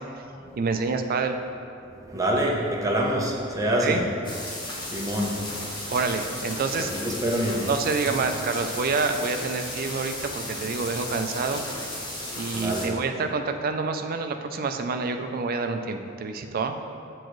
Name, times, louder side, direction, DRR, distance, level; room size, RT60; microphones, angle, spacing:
voice 1, 0.6-1.4 3.8-4.0 5.9-6.9 7.6-11.6 12.0-16.8, right 4 dB, 45° right, 7 dB, 0.4 m, -27 dB
voice 2, 1.9-4.0 4.9-5.3 6.8-7.7 12.5-12.9, right 1 dB, 15° right, -2 dB, 0.7 m, -26 dB
sound 1, 4.2-12.9, left 1 dB, 25° left, 1.0 m, -35 dB
7.8 x 4.5 x 3.1 m, 2.5 s
head